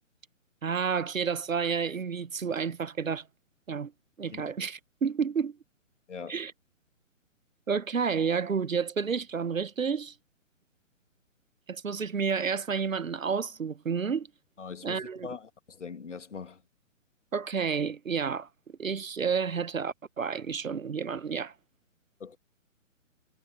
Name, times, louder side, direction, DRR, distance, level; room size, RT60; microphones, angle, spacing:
voice 1, 0.6-3.2 3.7-3.9 4.2-5.6 6.3-6.5 7.7-10.1 11.7-14.3 14.8-15.3 17.3-18.5 18.8-21.5, right 6 dB, 85° right, 0.7 m, -30 dB
voice 2, 6.1-6.4 14.6-16.6 22.2-22.4, left 5 dB, 65° left, 1.6 m, -42 dB
figure-of-eight pair, 135°, 39 cm